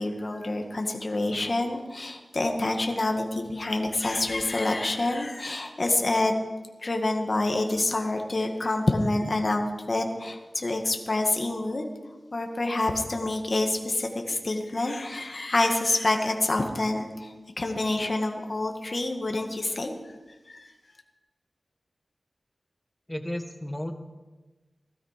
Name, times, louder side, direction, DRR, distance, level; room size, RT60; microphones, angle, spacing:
voice 1, 0.0-6.3 6.8-11.9 12.3-20.2 20.5-20.7, left 2 dB, 45° left, 3 dB, 1.8 m, -27 dB
voice 2, 23.1-23.9, left 1 dB, 10° left, 6 dB, 1.6 m, -33 dB
17.0 x 13.0 x 5.1 m, 1.2 s
wide cardioid pair, 80°, 0 cm